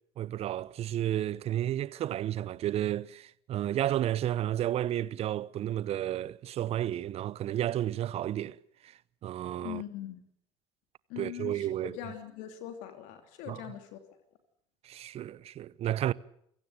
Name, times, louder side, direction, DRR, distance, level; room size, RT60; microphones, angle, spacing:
voice 1, 0.2-8.6 8.8-8.9 9.2-9.8 11.2-11.9 13.5-13.6 14.8-16.1, right 12 dB, 50° right, 0.9 m, -32 dB
voice 2, 9.6-10.2 11.1-14.0, left 11 dB, 70° left, 2.9 m, -41 dB
28.5 x 17.5 x 8.1 m
hypercardioid pair, 70°, 13 cm